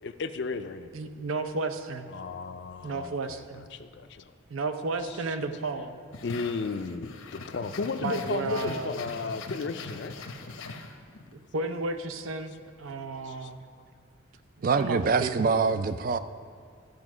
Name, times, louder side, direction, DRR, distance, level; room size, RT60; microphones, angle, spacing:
voice 1, 0.0-0.9 2.1-4.3 6.2-10.2 13.2-13.5, left 4 dB, 55° left, 0.4 m, -34 dB
voice 2, 0.9-2.1 2.8-3.6 4.5-6.0 8.0-9.0 11.3-13.6 14.8-15.5, right 3 dB, 80° right, 0.6 m, -33 dB
sound 1, 6.1-11.3, left 3 dB, 80° left, 0.8 m, -41 dB
voice 3, 14.6-16.2, right 4 dB, 40° right, 0.3 m, -25 dB
13.0 x 5.2 x 6.1 m
head